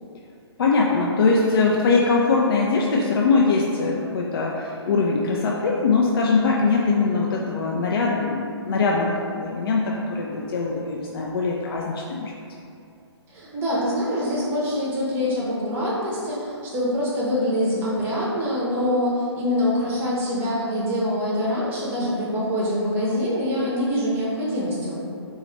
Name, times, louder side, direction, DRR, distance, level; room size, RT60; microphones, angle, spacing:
voice 1, 0.6-9.1 9.4-12.3, left 4 dB, 55° left, -2 dB, 0.4 m, -22 dB
voice 2, 13.3-25.0, left 1 dB, 15° right, -6 dB, 0.6 m, -24 dB
4.0 x 2.3 x 3.1 m, 2.5 s
figure-of-eight pair, 135°, 15 cm